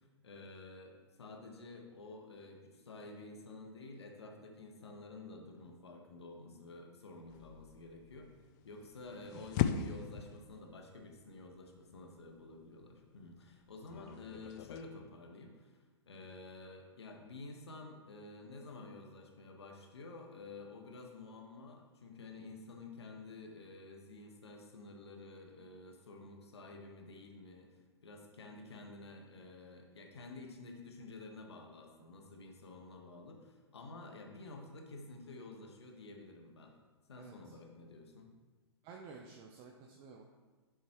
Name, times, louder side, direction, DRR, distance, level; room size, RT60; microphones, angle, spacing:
voice 1, 0.0-8.3 8.6-36.7 37.1-38.3, left 3 dB, 70° left, 2 dB, 1.5 m, -51 dB
sound 1, 7.3-14.8, left 9 dB, 40° left, 0.5 m, -40 dB
voice 2, 37.2-37.6 38.8-40.2, right 5 dB, 35° right, 1 dB, 0.8 m, -52 dB
10.0 x 7.4 x 3.1 m, 1.3 s
figure-of-eight pair, 110°, 14 cm